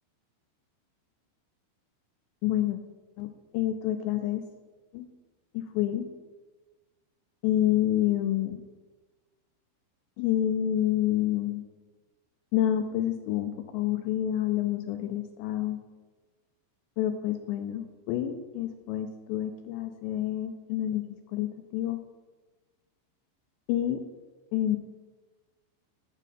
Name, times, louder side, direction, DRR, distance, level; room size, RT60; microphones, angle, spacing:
voice 1, 2.4-2.8 3.2-4.4 4.9-5.1 5.5-6.1 7.4-8.6 10.2-11.6 12.5-15.8 17.0-22.0 23.7-24.1 24.5-24.8, left 12 dB, 85° left, 7 dB, 2.5 m, -28 dB
9.1 x 7.4 x 5.5 m, 1.2 s
omnidirectional pair, 5.6 m